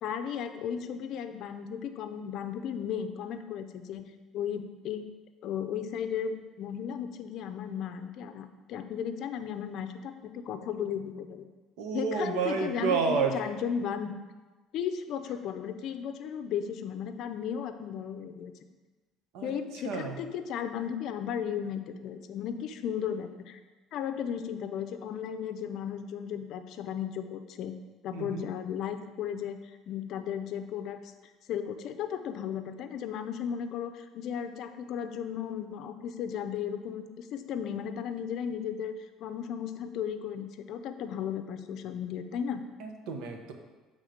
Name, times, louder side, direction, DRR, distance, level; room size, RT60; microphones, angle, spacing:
voice 1, 0.0-4.1 4.3-5.1 5.4-11.4 11.9-14.1 14.7-18.5 19.4-23.6 23.9-27.7 28.0-31.0 31.5-38.9 39.2-42.6, left 8 dB, 60° left, 9 dB, 0.5 m, -35 dB
voice 2, 11.8-13.3 19.3-19.5 19.8-20.2 28.1-28.5 42.8-43.5, right 5 dB, 80° right, 3 dB, 0.9 m, -30 dB
7.7 x 3.6 x 5.1 m, 1.2 s
cardioid pair, 130°, 0 cm